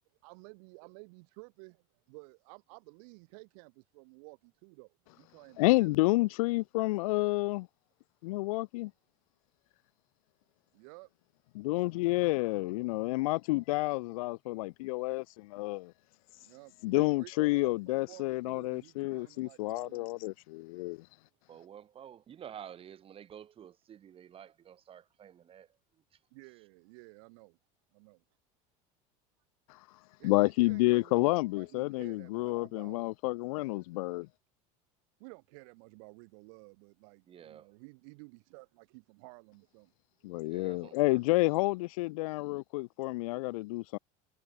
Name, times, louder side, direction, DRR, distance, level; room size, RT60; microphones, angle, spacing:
voice 1, 0.2-6.3 10.7-11.1 11.7-11.8 12.1-12.4 16.4-20.4 26.3-27.6 27.9-28.2 30.2-31.3 31.6-33.1 33.6-33.8 35.2-39.9 40.5-40.6, right 33 dB, 70° right, 5.8 m, -54 dB
voice 2, 5.6-7.7 8.2-8.9 11.6-15.9 16.8-21.0 30.2-34.3 40.2-44.0, left 22 dB, 85° left, 1.9 m, -29 dB
voice 3, 21.5-25.7 37.3-37.7 40.4-41.2, right 9 dB, 30° right, 7.9 m, -50 dB
supercardioid pair, 140°, 18 cm